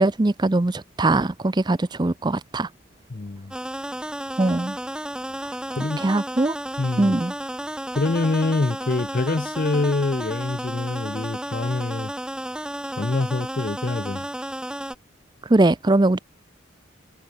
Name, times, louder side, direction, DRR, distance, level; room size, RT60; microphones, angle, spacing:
voice 1, 0.0-2.7 4.4-4.8 6.0-6.5 7.0-7.3 15.5-16.2, right 2 dB, 20° right, 0.5 m, -21 dB
voice 2, 3.1-3.5 5.8-6.0 6.8-7.2 7.9-12.1 13.0-14.3, left 3 dB, 45° left, 0.6 m, -25 dB
sound 1, 3.5-15.0, equal, 5° right, 4.5 m, -32 dB
head